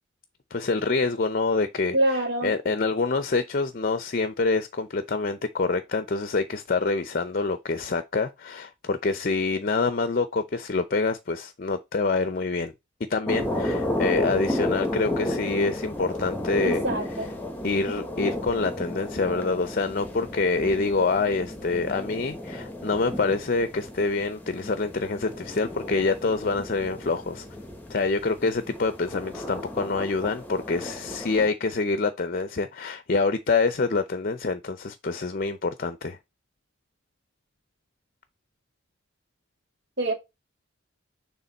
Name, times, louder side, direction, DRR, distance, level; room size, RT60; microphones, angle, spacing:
voice 1, 0.5-12.7 13.1-16.8 17.6-27.5 27.9-36.2, left 3 dB, 45° left, 0.5 m, -26 dB
voice 2, 1.9-2.5 16.6-17.3 40.0-40.1, right 1 dB, 55° right, 2.0 m, -25 dB
sound 1, 13.3-31.5, left 1 dB, 10° left, 1.1 m, -33 dB
6.7 x 3.6 x 4.0 m
head